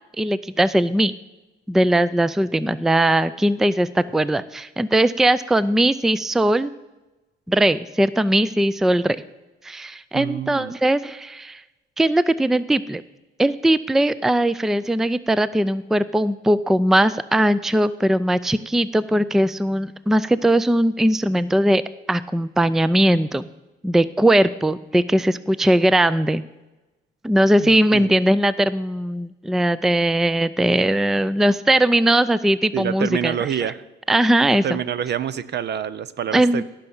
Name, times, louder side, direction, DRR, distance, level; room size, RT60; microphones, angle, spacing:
voice 1, 0.2-1.1 1.7-6.7 7.5-9.2 9.6-11.6 12.0-13.0 13.4-21.8 22.1-23.4 23.8-26.4 27.2-33.7 34.1-34.6 36.3-36.6, right 1 dB, ahead, 16 dB, 0.4 m, -19 dB
voice 2, 10.1-10.7 27.6-28.1 32.7-33.8 34.6-36.6, right 9 dB, 60° right, 16 dB, 0.7 m, -27 dB
17.5 x 5.8 x 7.1 m, 1.1 s
cardioid pair, 90°, 20 cm